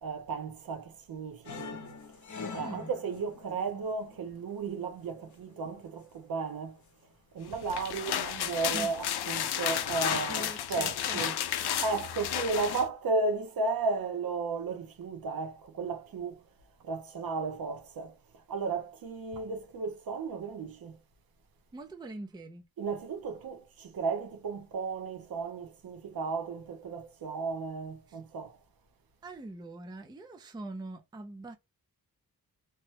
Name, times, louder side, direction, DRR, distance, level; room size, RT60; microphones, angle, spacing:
voice 1, 0.0-6.8 7.3-11.3 11.8-16.5 16.8-21.0 22.8-28.6, right 4 dB, 65° right, 0.8 m, -34 dB
sound 1, 1.4-4.9 5.2-5.7 6.4-6.9 7.5-8.1 8.4-8.7 9.2-10.2, left 5 dB, 50° left, 0.8 m, -45 dB
voice 2, 2.6-2.9 8.7-8.9 9.4-9.5 10.3-11.5 21.7-22.6 28.1-28.2 29.2-31.6, right 2 dB, 10° right, 0.4 m, -43 dB
sound 2, 7.5-12.9, left 10 dB, 90° left, 0.5 m, -32 dB
2.9 x 2.2 x 3.1 m
wide cardioid pair, 145°, 38 cm